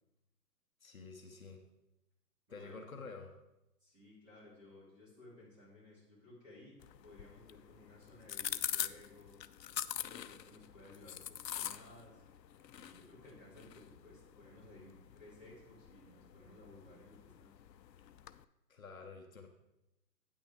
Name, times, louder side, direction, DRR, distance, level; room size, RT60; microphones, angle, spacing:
voice 1, 0.8-1.6 2.5-3.4 18.7-19.5, left 4 dB, 55° left, 3 dB, 1.0 m, -49 dB
voice 2, 2.5-2.8 3.8-6.7 7.0-9.5 10.0-12.2 12.7-17.5, left 1 dB, 10° right, -9 dB, 2.7 m, -58 dB
sound 1, 6.8-18.4, left 10 dB, 80° left, 0.6 m, -45 dB
9.4 x 8.8 x 3.5 m, 0.92 s
hypercardioid pair, 165°, 50 cm